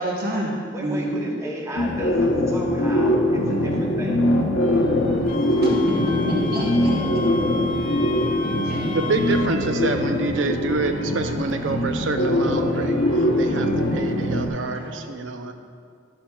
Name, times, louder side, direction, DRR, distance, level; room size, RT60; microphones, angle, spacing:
voice 1, 0.0-0.5 0.8-1.3 5.6-7.2 7.5-7.7 8.6-8.9, right 1 dB, 55° right, -4 dB, 1.2 m, -27 dB
voice 2, 0.7-4.2, equal, 15° right, -2 dB, 0.9 m, -34 dB
sound 1, 1.8-14.5, left 1 dB, 90° left, 0.8 m, -22 dB
sound 2, 4.6-15.0, right 1 dB, 30° right, 1.6 m, -39 dB
Wind instrument woodwind instrument, 5.3-9.5, left 3 dB, 45° left, 0.5 m, -34 dB
voice 3, 8.9-15.5, right 3 dB, 85° right, 7 dB, 0.6 m, -27 dB
11.0 x 7.3 x 2.3 m, 2.2 s
head